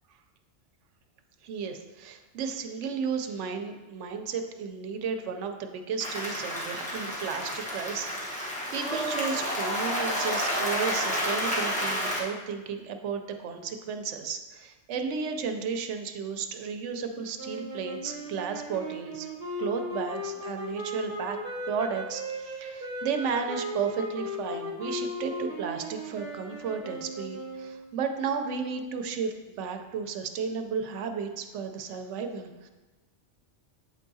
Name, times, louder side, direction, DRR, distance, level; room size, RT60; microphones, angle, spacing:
voice 1, 1.4-19.3 19.6-21.4 21.7-32.7, right 6 dB, 85° right, 6 dB, 0.9 m, -33 dB
Applause, 6.0-12.2, equal, 5° left, 1.0 m, -30 dB
sound 1, 17.4-27.9, equal, 45° right, 1.0 m, -37 dB
7.8 x 4.6 x 2.7 m, 1.2 s
omnidirectional pair, 1.2 m